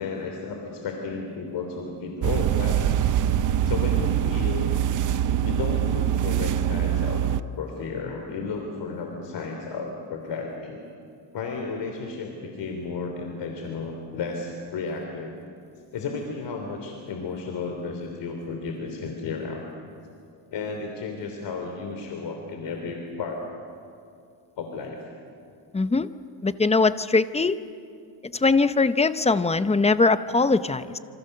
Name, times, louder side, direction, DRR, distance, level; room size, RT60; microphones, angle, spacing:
voice 1, 0.0-3.2 3.6-4.7 5.4-7.2 7.5-10.8 11.3-15.3 15.9-19.7 20.5-23.6 24.6-25.0, left 4 dB, 60° left, 3 dB, 3.4 m, -33 dB
sound 1, 2.2-7.4, right 10 dB, 40° right, 0.6 m, -23 dB
voice 2, 25.7-26.1 26.4-27.6 28.3-31.0, left 3 dB, 15° left, 12 dB, 0.7 m, -21 dB
27.5 x 26.0 x 6.7 m, 2.5 s
cardioid pair, 120°, 49 cm